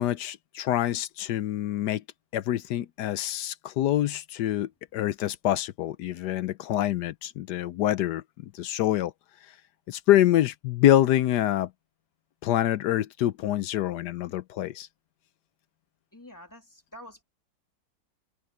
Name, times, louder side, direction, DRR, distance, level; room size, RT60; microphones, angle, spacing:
voice 1, 0.0-2.0 2.3-9.1 9.9-11.7 12.4-14.9, left 13 dB, 75° left, 1.2 m, -26 dB
voice 2, 16.1-17.2, left 1 dB, 10° left, 3.2 m, -47 dB
omnidirectional pair, 1.9 m